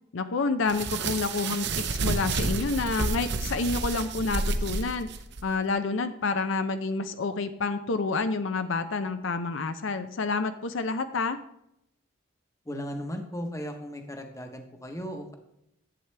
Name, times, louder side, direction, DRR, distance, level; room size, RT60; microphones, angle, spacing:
voice 1, 0.1-5.1 5.4-11.4, left 3 dB, 65° left, 10 dB, 0.5 m, -29 dB
sound 1, 0.7-5.4, right 3 dB, 55° right, 0.7 m, -30 dB
voice 2, 12.7-15.3, equal, 15° left, 5 dB, 1.0 m, -36 dB
11.0 x 8.1 x 3.3 m, 0.79 s
head